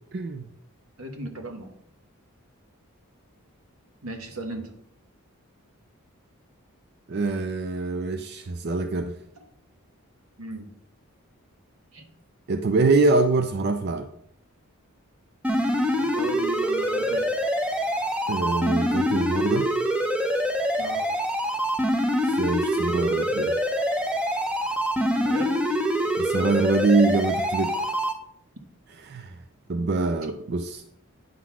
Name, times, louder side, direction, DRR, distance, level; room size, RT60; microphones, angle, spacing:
voice 1, 0.1-0.4 7.1-9.2 12.5-14.1 18.3-19.7 22.2-23.5 26.2-27.9 29.0-29.4 29.7-30.8, right 3 dB, 45° right, 8 dB, 0.4 m, -24 dB
voice 2, 1.0-1.7 4.0-4.7 10.4-10.7 11.9-12.0 16.0-17.3 20.8-21.1 25.2-25.5, right 2 dB, 75° right, 4 dB, 1.5 m, -37 dB
sound 1, 15.4-28.1, equal, 5° right, 0.6 m, -25 dB
9.4 x 3.9 x 6.0 m, 0.71 s
head